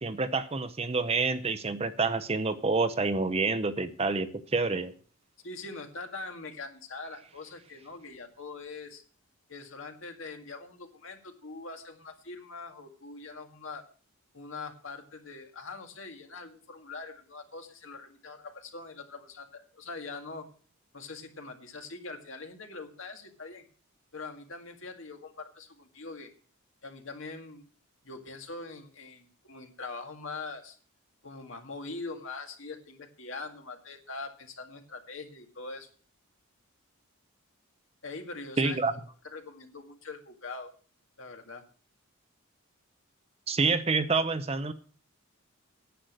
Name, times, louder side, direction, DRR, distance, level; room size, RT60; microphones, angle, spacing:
voice 1, 0.0-4.9 38.6-38.9 43.5-44.7, right 3 dB, 25° right, 0.6 m, -28 dB
voice 2, 5.4-9.0 9.5-13.8 14.3-20.5 20.9-23.6 24.1-26.3 26.8-27.6 28.0-30.8 31.2-35.9 38.0-38.8 39.2-40.7 41.2-41.7, left 3 dB, 60° left, 1.9 m, -43 dB
10.0 x 8.1 x 6.4 m
head